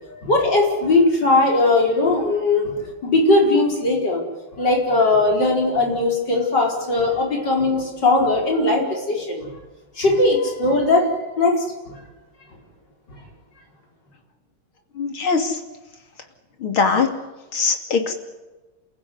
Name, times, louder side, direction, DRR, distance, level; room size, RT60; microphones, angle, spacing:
voice 1, 0.1-4.2 4.6-9.5 10.0-12.0, left 2 dB, 55° left, 1 dB, 5.6 m, -19 dB
voice 2, 15.0-15.6 16.6-17.1 17.5-18.1, left 5 dB, 75° left, 5 dB, 3.6 m, -21 dB
29.0 x 15.5 x 9.7 m, 1.2 s
omnidirectional pair, 2.3 m